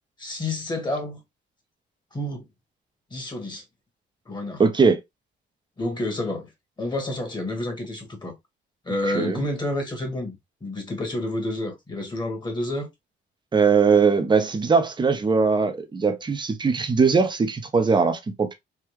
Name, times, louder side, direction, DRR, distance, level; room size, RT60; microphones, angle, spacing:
voice 1, 0.2-1.2 2.1-2.5 3.1-3.6 4.2-4.6 5.8-6.5 6.8-8.3 8.8-10.3 10.6-12.9, left 1 dB, 20° left, 1.4 m, -29 dB
voice 2, 4.6-5.0 9.1-9.4 13.5-18.5, right 5 dB, 25° right, 0.6 m, -20 dB
3.5 x 2.2 x 2.9 m
cardioid pair, 90°, 20 cm